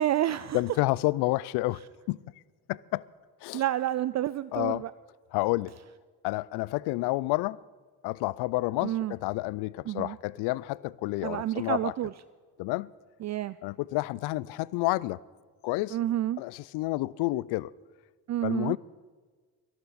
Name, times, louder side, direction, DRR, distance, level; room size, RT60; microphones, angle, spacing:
voice 1, 0.0-0.6 3.5-4.9 8.8-9.1 9.9-10.2 11.2-12.1 13.2-13.5 15.9-16.4 18.3-18.8, right 13 dB, 45° right, 0.4 m, -29 dB
voice 2, 0.5-1.8 2.1-2.2 2.7-3.0 3.4-3.6 4.5-4.9 5.3-5.7 6.2-7.6 8.0-11.9 12.6-12.9 13.6-15.2 15.6-16.0 16.4-17.7 18.4-18.8, left 20 dB, 75° left, 0.5 m, -29 dB
24.0 x 12.0 x 4.1 m
supercardioid pair, 60°, 40 cm